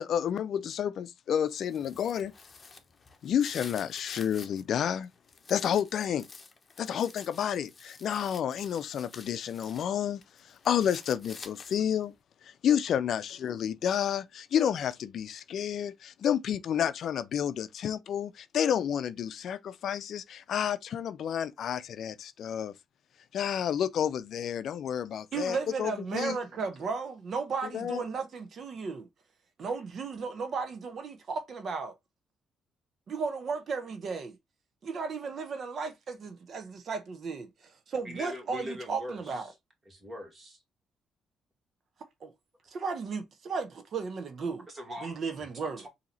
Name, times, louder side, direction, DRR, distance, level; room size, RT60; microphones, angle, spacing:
voice 1, 0.0-2.3 3.2-5.1 5.5-6.3 6.8-10.2 10.5-12.1 12.4-22.7 23.3-26.4 27.7-28.0, left 9 dB, 65° left, 0.4 m, -30 dB
sound 1, 1.5-4.6 5.0-9.9 10.2-12.0, left 4 dB, 30° left, 0.9 m, -49 dB
voice 2, 25.3-29.1 29.6-31.9 33.1-34.4 34.8-39.5 42.2-42.3 42.7-44.7 45.0-45.9, right 5 dB, 55° right, 0.8 m, -35 dB
voice 3, 38.0-39.4 39.9-40.6 44.7-45.2 45.8-45.9, left 1 dB, 25° right, 2.0 m, -41 dB
4.1 x 2.8 x 3.9 m
cardioid pair, 90°, 0 cm